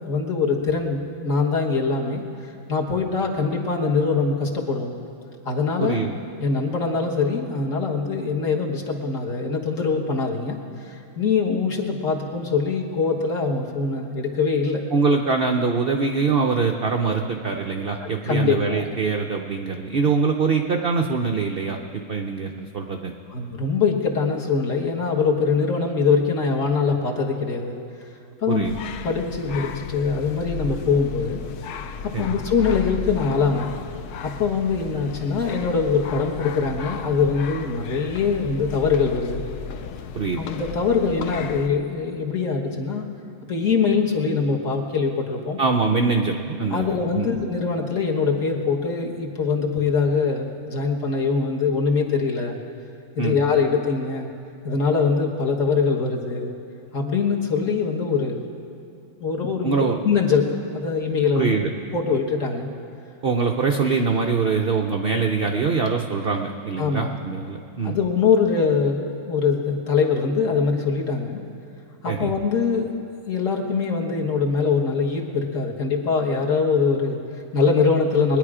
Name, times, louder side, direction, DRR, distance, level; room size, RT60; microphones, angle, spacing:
voice 1, 0.0-4.9 5.4-6.0 6.4-14.8 18.0-18.8 23.3-27.8 28.4-28.7 29.0-31.4 32.0-33.7 34.2-39.4 40.4-43.1 43.5-45.6 46.7-52.6 53.1-54.3 54.6-56.5 56.9-58.4 59.2-61.6 61.9-62.7 66.8-67.2 67.8-71.4 72.0-73.0 73.3-78.4, left 5 dB, 50° left, 0 dB, 1.6 m, -23 dB
voice 2, 5.8-6.1 14.9-23.1 28.5-28.7 32.1-32.3 40.1-40.4 45.6-47.3 53.2-53.4 59.6-60.0 61.3-61.7 63.2-68.0 72.1-72.3, right 4 dB, 70° right, 4 dB, 0.5 m, -23 dB
sound 1, 28.6-41.7, left 6 dB, 70° left, 1.0 m, -35 dB
21.5 x 10.0 x 4.9 m, 2.5 s
omnidirectional pair, 1.9 m